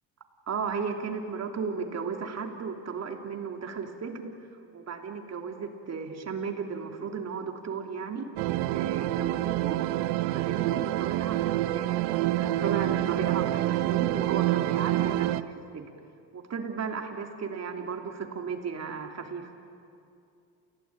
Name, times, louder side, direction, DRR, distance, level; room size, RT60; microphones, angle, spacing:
voice 1, 0.5-4.3 4.7-8.3 8.7-9.8 10.2-15.9 16.3-19.5, right 5 dB, 40° right, 3 dB, 3.2 m, -35 dB
sound 1, 8.4-15.4, right 15 dB, 75° right, 0.9 m, -27 dB
29.0 x 17.0 x 8.9 m, 2.5 s
supercardioid pair, 80°, 40 cm